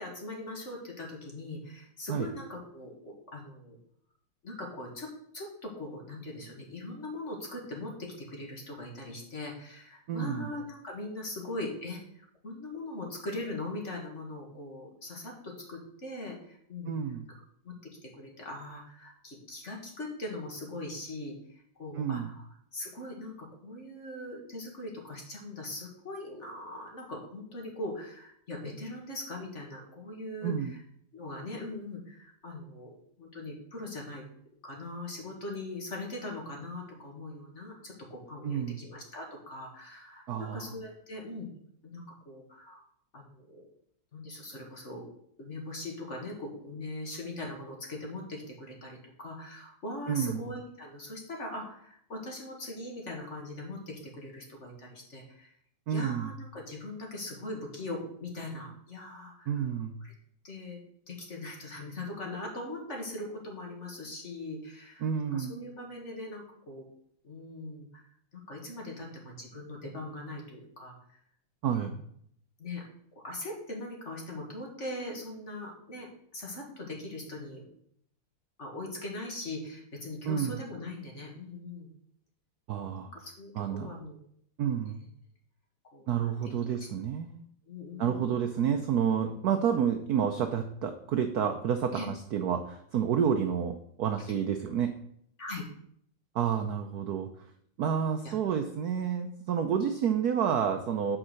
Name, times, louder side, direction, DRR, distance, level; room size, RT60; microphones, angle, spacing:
voice 1, 0.0-3.8 4.4-16.9 17.6-22.4 22.7-30.8 31.1-34.2 34.6-41.5 41.8-42.8 43.1-43.7 44.1-45.0 45.4-55.5 55.9-59.7 60.0-60.1 60.4-60.8 61.1-66.9 67.2-68.1 68.3-71.2 71.7-71.9 72.6-72.8 73.2-77.7 78.6-81.9 83.1-84.2 85.0-85.1 85.9-86.5 86.8-86.9 87.7-88.4 89.3-89.4 91.9-92.1 94.2-94.3 95.4-95.6 98.2-98.3, left 2 dB, 35° left, 0 dB, 2.0 m, -41 dB
voice 2, 10.1-10.5 16.9-17.2 22.0-22.3 30.4-30.7 38.4-38.8 40.3-40.7 50.1-50.4 55.9-56.3 59.5-60.0 65.0-65.5 71.6-71.9 80.3-80.6 82.7-83.1 83.6-83.9 84.6-85.0 86.1-87.4 88.0-95.0 96.3-97.3 97.8-101.2, right 8 dB, 70° right, 7 dB, 0.9 m, -29 dB
8.8 x 4.9 x 6.5 m, 0.68 s
omnidirectional pair, 2.3 m